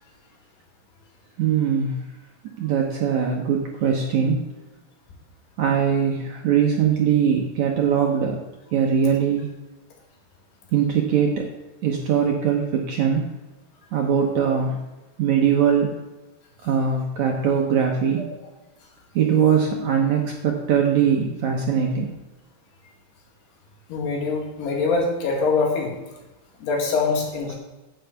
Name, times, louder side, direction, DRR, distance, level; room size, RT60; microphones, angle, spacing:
voice 1, 1.4-2.0 2.6-4.4 5.6-8.4 8.7-9.5 10.7-11.5 11.8-13.3 13.9-14.8 15.2-15.9 16.6-18.3 19.2-22.1, right 7 dB, 70° right, 0 dB, 1.8 m, -21 dB
voice 2, 23.9-25.9 26.6-27.6, left 4 dB, 90° left, -1 dB, 4.2 m, -23 dB
10.0 x 5.8 x 8.1 m, 1.1 s
omnidirectional pair, 4.6 m